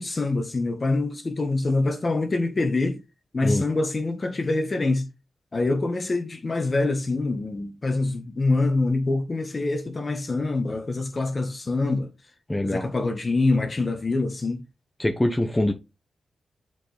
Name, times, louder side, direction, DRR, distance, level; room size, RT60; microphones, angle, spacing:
voice 1, 0.0-3.0 3.3-5.1 5.5-12.1 12.6-14.6, left 2 dB, 35° left, 1.6 m, -25 dB
voice 2, 12.5-12.9 15.0-15.7, left 1 dB, 15° left, 1.1 m, -24 dB
7.2 x 4.7 x 3.5 m
cardioid pair, 80°, 0 cm